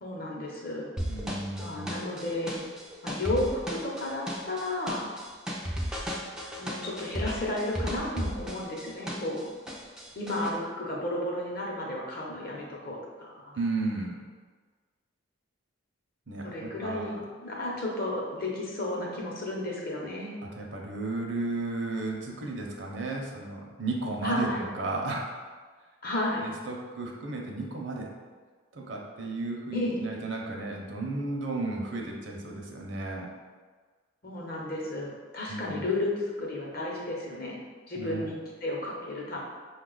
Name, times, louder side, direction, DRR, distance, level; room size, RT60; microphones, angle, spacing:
voice 1, 0.0-0.9 1.6-2.6 3.0-5.1 6.6-9.5 10.2-13.6 16.4-20.3 24.2-24.7 26.0-26.5 29.7-30.0 34.2-37.6 37.9-39.4, left 1 dB, 45° left, -3 dB, 0.8 m, -33 dB
sound 1, 1.0-9.4 9.7-10.5, equal, 5° right, 0.4 m, -35 dB
voice 2, 1.1-1.9 13.5-14.2 16.3-17.2 20.6-25.3 26.4-28.1 28.7-33.3 35.5-35.8 38.0-38.3, right 2 dB, 60° right, -1 dB, 0.7 m, -34 dB
5.3 x 2.3 x 3.9 m, 1.5 s
head